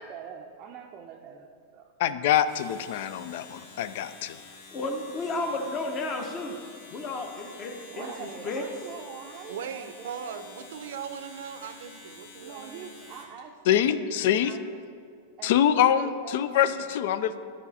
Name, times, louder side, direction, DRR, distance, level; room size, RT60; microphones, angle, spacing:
voice 1, 0.0-1.9 5.3-5.8 7.9-10.7 12.4-14.8 15.4-17.0, right 7 dB, 30° right, 1 dB, 0.5 m, -44 dB
voice 2, 2.0-4.4 13.7-14.6 15.4-17.3, left 10 dB, 55° left, 13 dB, 0.4 m, -24 dB
Domestic sounds home sounds, 2.4-13.4, left 4 dB, 85° left, 2.4 m, -49 dB
voice 3, 4.4-6.6 6.9-8.6, left 2 dB, 25° left, 3 dB, 0.9 m, -33 dB
voice 4, 9.5-13.0, right 7 dB, 80° right, 10 dB, 0.6 m, -39 dB
13.0 x 5.0 x 4.1 m, 2.2 s
supercardioid pair, 165°, 0 cm